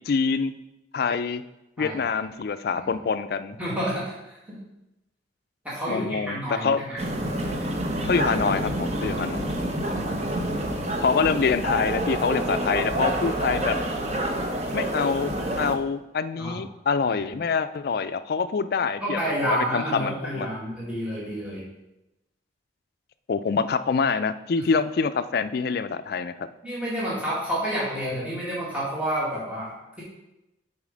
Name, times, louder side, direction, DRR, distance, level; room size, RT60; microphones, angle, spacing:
voice 1, 0.1-0.6 0.9-1.4 1.8-3.6 5.9-6.8 8.1-9.5 11.0-13.8 14.7-20.5 23.3-26.5, left 5 dB, 55° left, 12 dB, 0.3 m, -26 dB
voice 2, 3.6-4.2 4.5-4.6 5.6-7.0 9.0-9.4 9.9-10.8 16.4-16.6 17.2-17.3 19.0-21.6 26.6-30.0, equal, 5° right, -8 dB, 1.8 m, -30 dB
sound 1, 7.0-15.8, right 1 dB, 35° right, 0.8 m, -28 dB
7.2 x 4.2 x 5.0 m, 0.93 s
head